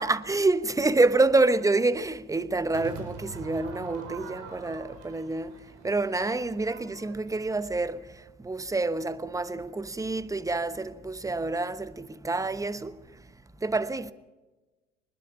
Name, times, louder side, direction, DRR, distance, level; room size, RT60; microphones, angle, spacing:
voice 1, 0.0-13.3 13.6-14.1, right 3 dB, 10° right, 1.1 m, -27 dB
Crowd / Fireworks, 2.7-8.0, right 4 dB, 55° right, 4.4 m, -44 dB
25.0 x 20.5 x 5.9 m
figure-of-eight pair, 70°, 34 cm